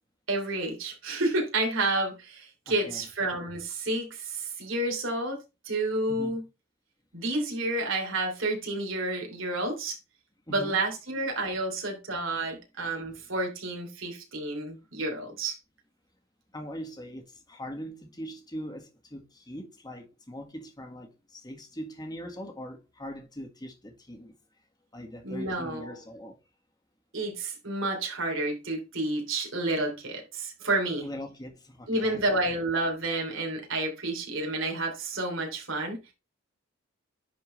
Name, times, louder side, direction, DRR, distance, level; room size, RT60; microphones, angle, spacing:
voice 1, 0.3-6.4 7.1-10.0 10.5-15.6 25.2-26.0 27.1-31.1 31.9-36.0, right 2 dB, 75° right, 3.1 m, -30 dB
voice 2, 2.7-3.1 6.1-6.4 10.5-10.8 13.2-13.3 16.5-24.3 24.9-26.4 31.0-32.2, equal, 20° left, 1.7 m, -41 dB
10.0 x 4.6 x 3.2 m
head